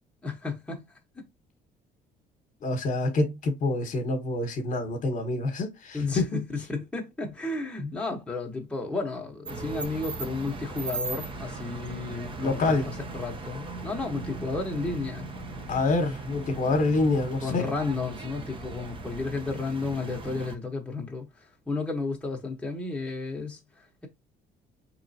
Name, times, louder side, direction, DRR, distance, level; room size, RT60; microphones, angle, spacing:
voice 1, 0.2-0.8 1.2-1.3 5.9-15.3 17.4-24.1, left 3 dB, 5° left, 0.9 m, -33 dB
voice 2, 2.6-6.4 7.8-7.9 12.4-12.9 15.7-17.6, left 2 dB, 50° left, 1.0 m, -26 dB
sound 1, 9.4-20.6, right 3 dB, 30° right, 0.7 m, -38 dB
3.7 x 3.0 x 2.7 m
cardioid pair, 110°, 17 cm